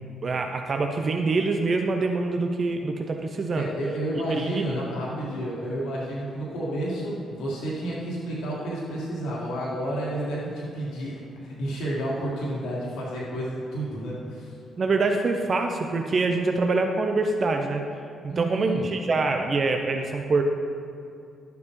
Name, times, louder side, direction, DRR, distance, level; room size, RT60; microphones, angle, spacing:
voice 1, 0.2-3.7 4.3-4.7 14.8-17.8 18.2-20.4, right 3 dB, 45° right, 4 dB, 0.6 m, -25 dB
voice 2, 3.5-14.6 18.3-19.0, right 1 dB, 75° left, -6 dB, 1.7 m, -31 dB
11.5 x 7.1 x 3.2 m, 2.5 s
hypercardioid pair, 45°, 0 cm